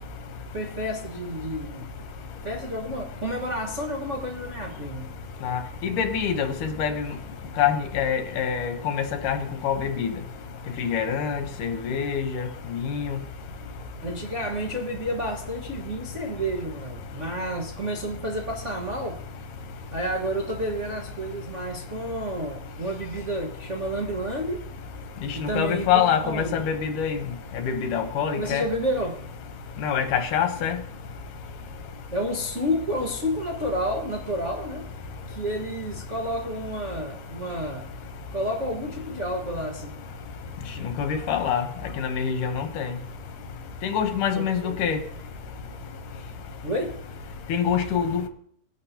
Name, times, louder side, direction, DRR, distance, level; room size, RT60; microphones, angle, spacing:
voice 1, 0.5-1.9 2.4-5.1 14.0-19.2 19.9-24.6 25.3-26.6 28.3-29.3 32.1-34.9 35.3-37.9 38.3-39.9 44.3-44.7 46.6-46.9, equal, 70° right, -1 dB, 0.6 m, -30 dB
voice 2, 5.4-7.0 7.6-10.1 10.8-13.1 25.4-27.2 27.6-28.6 29.8-30.8 40.8-41.6 42.0-42.9 43.8-45.0 47.5-48.3, left 7 dB, 70° left, 7 dB, 2.4 m, -25 dB
19.5 x 11.0 x 2.9 m, 0.68 s
omnidirectional pair, 4.1 m